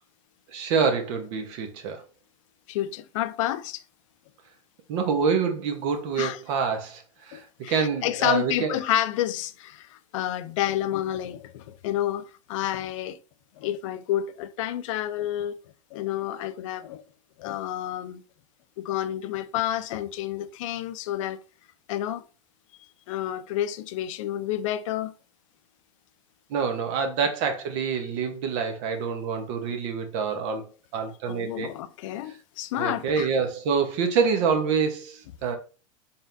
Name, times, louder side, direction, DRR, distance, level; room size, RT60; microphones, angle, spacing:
voice 1, 0.5-2.0 4.9-8.8 26.5-31.7 32.8-35.6, right 6 dB, 60° right, 1.0 m, -26 dB
voice 2, 2.7-3.8 6.2-6.4 7.3-9.9 10.1-13.2 13.6-15.5 15.9-17.0 17.4-18.2 18.8-21.4 21.9-22.2 23.1-25.1 31.3-33.3, left 12 dB, 65° left, 0.4 m, -29 dB
4.1 x 3.6 x 2.6 m
hypercardioid pair, 115°, 17 cm